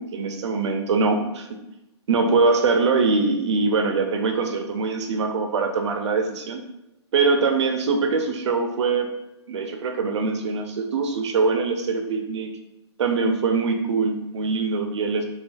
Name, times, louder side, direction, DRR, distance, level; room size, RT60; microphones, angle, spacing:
voice 1, 0.0-1.5 2.1-6.6 7.1-9.1 9.5-12.5 13.0-15.2, right 4 dB, 75° right, 4 dB, 0.5 m, -23 dB
2.4 x 2.3 x 2.2 m, 0.93 s
hypercardioid pair, 145°, 15 cm